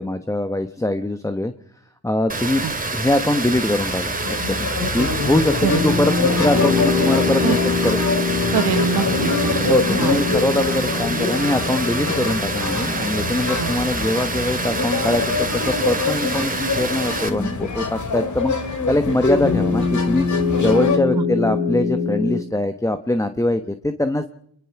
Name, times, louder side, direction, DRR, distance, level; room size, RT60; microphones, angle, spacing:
voice 1, 0.0-1.5 2.0-2.6 2.9-4.7 4.9-8.0 9.7-20.3 20.6-24.3, left 1 dB, 10° left, 9 dB, 1.2 m, -22 dB
Water, 2.3-17.3, right 3 dB, 20° right, 2.5 m, -27 dB
sound 1, 3.6-21.0, left 4 dB, 45° left, 3.3 m, -25 dB
sound 2, 5.7-18.1 19.4-22.4, left 4 dB, 65° left, 7.1 m, -25 dB
voice 2, 8.5-10.2 13.6-13.7 21.1-21.3, right 10 dB, 65° right, 12 dB, 1.5 m, -25 dB
24.0 x 22.5 x 6.0 m, 0.71 s
cardioid pair, 70°, 40 cm